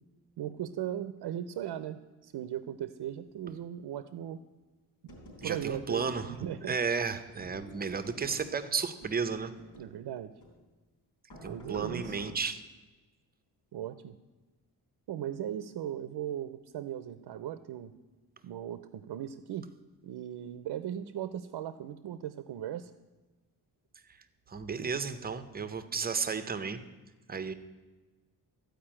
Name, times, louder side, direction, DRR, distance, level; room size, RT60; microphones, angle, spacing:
voice 1, 0.4-4.4 5.4-6.8 9.8-10.3 11.4-12.2 13.7-14.2 15.1-17.9 18.4-19.7 20.0-22.9, right 10 dB, 80° right, 12 dB, 0.6 m, -38 dB
sound 1, 5.1-6.8 7.4-8.6 9.0-10.0 10.4-10.6 11.3-12.3, equal, 85° left, 3.7 m, -50 dB
voice 2, 5.4-6.3 6.7-9.5 11.4-12.6 24.5-26.8 27.3-27.5, right 5 dB, 25° right, 11 dB, 0.6 m, -33 dB
14.0 x 5.1 x 8.7 m, 1.2 s
wide cardioid pair, 175°, 40 cm